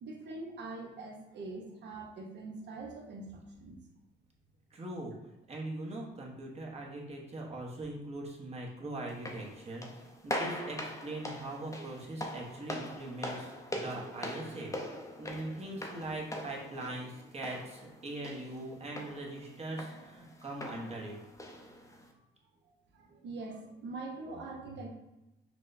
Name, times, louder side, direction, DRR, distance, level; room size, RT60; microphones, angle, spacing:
voice 1, 0.0-3.8 22.9-24.9, right 3 dB, 65° right, 1 dB, 0.9 m, -43 dB
voice 2, 4.7-5.1 5.5-14.7 15.2-21.1, right 2 dB, 30° right, -2 dB, 0.9 m, -41 dB
sound 1, 9.1-22.1, left 1 dB, 15° left, 0.6 m, -42 dB
5.9 x 2.1 x 2.6 m, 0.95 s
cardioid pair, 90°, 20 cm